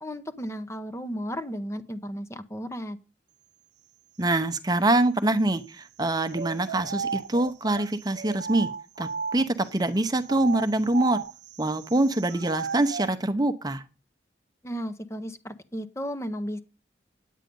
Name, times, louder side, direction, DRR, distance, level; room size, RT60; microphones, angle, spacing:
voice 1, 0.0-3.0 14.6-16.6, equal, 15° left, 10 dB, 0.7 m, -34 dB
voice 2, 4.2-8.7 9.0-11.2 11.6-13.8, right 2 dB, 20° right, 11 dB, 0.8 m, -25 dB
sound 1, 6.3-9.7 10.2-13.1, right 6 dB, 70° right, 0.5 m, -35 dB
9.3 x 9.0 x 5.3 m, 0.32 s
head